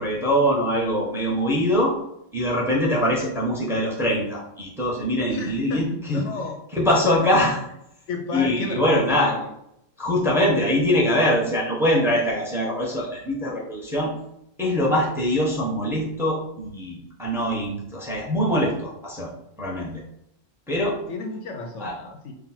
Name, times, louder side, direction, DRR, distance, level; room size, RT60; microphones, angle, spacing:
voice 1, 0.0-1.9 2.3-6.2 6.7-7.6 8.3-9.3 10.0-14.1 14.6-19.3 19.6-20.0 20.7-21.0 21.8-21.9, equal, ahead, -3 dB, 0.9 m, -23 dB
voice 2, 5.3-6.6 8.1-9.5 21.1-22.3, left 3 dB, 70° left, 3 dB, 0.9 m, -32 dB
4.3 x 2.5 x 4.2 m, 0.78 s
omnidirectional pair, 1.4 m